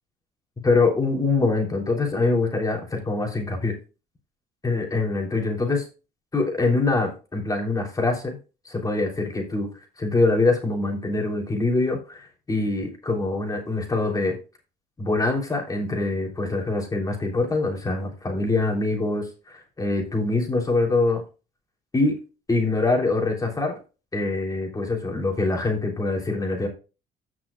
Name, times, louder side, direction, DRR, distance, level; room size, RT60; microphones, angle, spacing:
voice 1, 0.6-3.7 4.6-5.8 6.3-8.4 8.6-9.7 10.0-14.4 15.0-21.2 21.9-22.2 22.5-23.7 24.1-26.7, left 3 dB, 20° left, 1 dB, 3.2 m, -24 dB
15.5 x 6.1 x 2.3 m, 0.32 s
cardioid pair, 110°, 17 cm